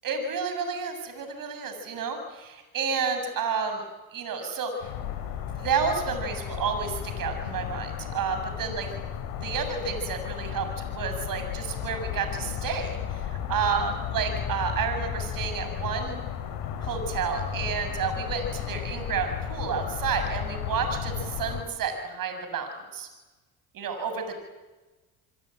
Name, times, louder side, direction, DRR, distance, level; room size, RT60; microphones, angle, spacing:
voice 1, 0.0-3.8 4.1-4.9 5.6-8.9 9.4-16.2 16.8-23.1 23.7-24.4, right 6 dB, 65° right, 7 dB, 7.5 m, -30 dB
sound 1, 4.8-21.6, left 9 dB, 80° left, 4.9 m, -34 dB
28.5 x 21.5 x 9.2 m, 1.2 s
supercardioid pair, 70°, 37 cm